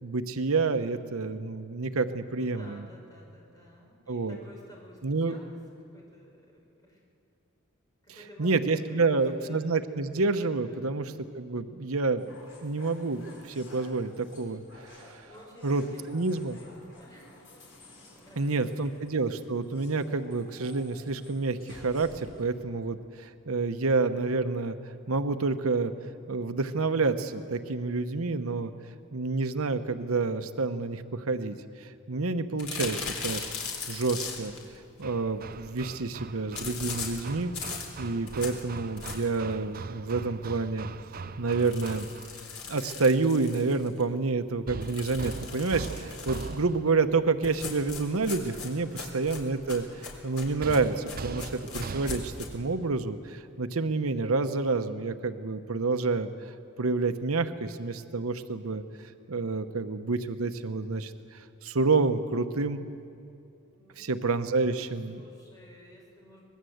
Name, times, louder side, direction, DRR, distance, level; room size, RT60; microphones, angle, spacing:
voice 1, 0.0-2.9 4.1-4.4 5.0-5.4 8.4-15.3 15.6-16.6 18.4-24.8 25.1-25.9 26.3-28.7 29.1-33.4 33.9-34.5 35.0-40.9 41.4-42.1 42.7-62.8 64.0-65.2, right 3 dB, 75° right, 9 dB, 0.9 m, -29 dB
voice 2, 2.1-5.6 5.9-7.0 8.0-9.6 10.7-11.0 15.2-17.4 18.1-18.9 63.7-66.4, left 1 dB, 15° left, -2 dB, 5.6 m, -53 dB
sound 1, 12.2-22.4, left 1 dB, 60° left, 6.4 m, -53 dB
sound 2, 32.6-34.7 36.5-39.5 39.9-40.0 40.3-40.4 40.7-40.8 41.5-44.0 44.8-46.6 47.4-52.5, left 5 dB, 80° left, 3.9 m, -39 dB
Hammer, 35.0-42.4 44.7-47.1 50.6-52.5, right 4 dB, 40° right, 0.5 m, -41 dB
25.0 x 20.0 x 7.9 m, 2.6 s
head